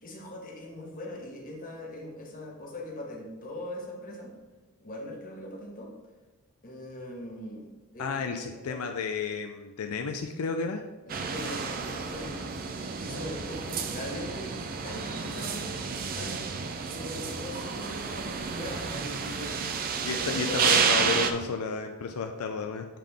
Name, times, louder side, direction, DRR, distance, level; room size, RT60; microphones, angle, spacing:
voice 1, 0.0-4.3 4.8-5.9 6.6-7.7 7.9-8.9 11.3-12.5 13.0-16.5 16.9-19.6 20.1-20.7, left 1 dB, 40° left, -1 dB, 1.1 m, -40 dB
voice 2, 8.0-10.8 20.0-22.9, left 4 dB, 80° left, 5 dB, 0.4 m, -32 dB
sound 1, 11.1-21.3, right 5 dB, 40° right, 0.4 m, -30 dB
7.4 x 3.7 x 3.4 m, 1.2 s
head